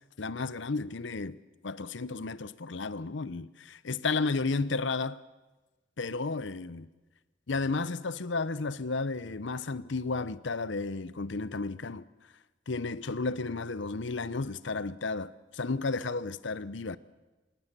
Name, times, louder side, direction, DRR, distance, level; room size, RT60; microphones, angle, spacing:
voice 1, 0.2-5.2 6.0-6.9 7.5-12.0 12.7-17.0, left 3 dB, 65° left, 0.7 m, -33 dB
26.0 x 19.0 x 6.8 m
head